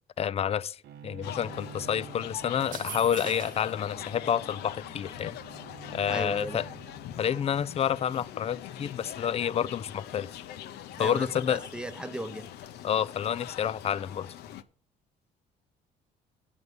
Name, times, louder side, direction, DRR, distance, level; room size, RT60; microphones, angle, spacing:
voice 1, 0.2-5.4 5.9-6.7 7.2-10.3 11.0-11.6 12.8-14.3, left 9 dB, 35° left, 0.5 m, -29 dB
Bowed string instrument, 0.8-7.5, right 8 dB, 75° right, 0.9 m, -49 dB
sound 1, 1.2-14.6, left 11 dB, 75° left, 0.8 m, -43 dB
sound 2, 2.6-3.8, right 11 dB, 50° right, 0.5 m, -41 dB
voice 2, 6.1-6.7 11.0-12.5, right 1 dB, 5° right, 0.9 m, -36 dB
9.4 x 5.5 x 7.9 m
cardioid pair, 110°, 17 cm